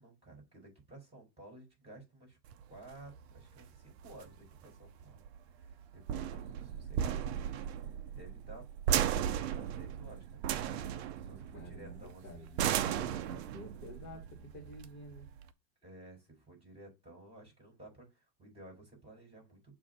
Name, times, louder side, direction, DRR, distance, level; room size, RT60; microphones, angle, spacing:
voice 1, 0.0-2.4 2.7-5.2 5.5-8.7 9.2-10.9 11.2-12.6 15.8-19.7, right 2 dB, 10° right, 4.1 m, -54 dB
sound 1, 2.5-15.5, right 10 dB, 40° right, 0.5 m, -36 dB
voice 2, 11.5-15.3, equal, 25° left, 1.6 m, -50 dB
7.2 x 2.7 x 5.2 m
supercardioid pair, 140°, 50 cm